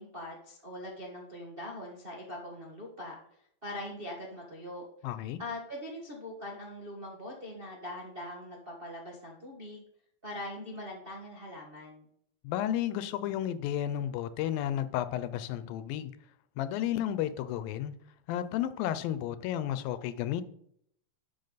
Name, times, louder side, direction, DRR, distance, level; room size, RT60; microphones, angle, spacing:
voice 1, 0.0-4.9 5.4-9.8 10.2-12.1, left 1 dB, 40° right, 0.7 m, -42 dB
voice 2, 5.0-5.4 12.4-16.1 16.6-17.9 18.3-20.4, left 11 dB, 90° left, 2.5 m, -32 dB
12.0 x 7.1 x 4.0 m
omnidirectional pair, 4.0 m